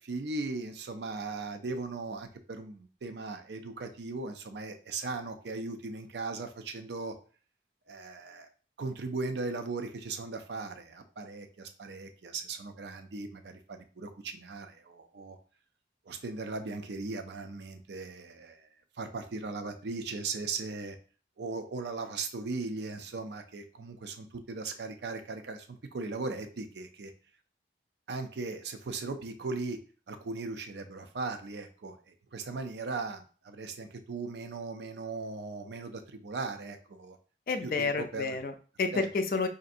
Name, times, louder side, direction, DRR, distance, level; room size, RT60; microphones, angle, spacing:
voice 1, 0.0-7.1 7.9-8.5 8.8-15.4 16.1-18.7 19.0-21.0 21.4-25.7 25.9-27.1 28.1-29.8 30.1-37.2 37.6-38.4 38.9-39.1, right 3 dB, 75° right, 7 dB, 0.5 m, -38 dB
voice 2, 37.5-39.5, left 4 dB, 50° left, 7 dB, 0.4 m, -30 dB
4.9 x 2.6 x 2.5 m, 0.39 s
head